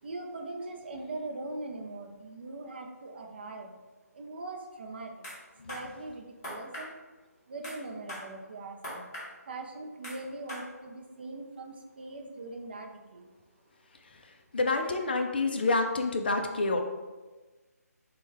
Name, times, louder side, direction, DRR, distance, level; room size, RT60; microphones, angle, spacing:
voice 1, 0.0-3.8 4.1-5.3 5.7-6.9 7.5-9.1 9.4-13.3, right 2 dB, 40° right, 2 dB, 0.5 m, -41 dB
sound 1, 5.2-5.4 5.7-5.8 6.4-6.9 7.6-7.8 8.1-8.3 8.8-9.3 10.0-10.2 10.5-10.6, left 1 dB, 20° left, 1.1 m, -40 dB
voice 2, 14.2-16.8, left 3 dB, 35° left, 4 dB, 0.3 m, -28 dB
6.0 x 2.2 x 3.3 m, 1.2 s
figure-of-eight pair, 150°, 9 cm